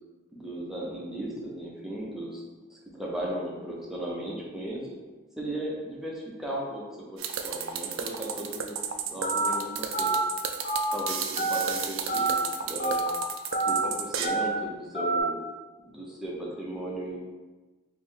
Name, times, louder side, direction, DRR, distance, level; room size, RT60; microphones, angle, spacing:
voice 1, 0.3-2.4 2.7-4.8 5.4-6.8 7.1-8.8 9.1-10.1 10.9-13.1 13.6-15.4 15.8-17.2, right 1 dB, ahead, -4 dB, 0.6 m, -36 dB
sound 1, 7.2-14.3, right 8 dB, 70° right, 0.3 m, -33 dB
Telephone, 9.2-9.5 9.9-10.2 10.6-10.9 11.4-11.6 12.1-12.4 12.8-13.1 13.5-13.8 14.2-14.5 14.9-15.2, right 3 dB, 35° left, 0.8 m, -27 dB
3.1 x 2.6 x 3.6 m, 1.2 s
head